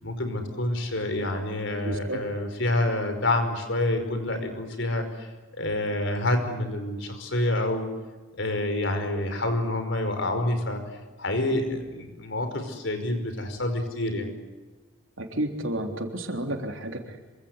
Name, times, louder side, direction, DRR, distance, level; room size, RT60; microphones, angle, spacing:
voice 1, 0.0-5.3 5.6-7.9 8.4-10.8 11.2-14.3, left 1 dB, 65° left, 7 dB, 5.3 m, -27 dB
voice 2, 1.8-2.2 15.2-17.2, right 1 dB, 80° right, 4 dB, 3.5 m, -31 dB
27.0 x 25.0 x 8.2 m, 1.3 s
head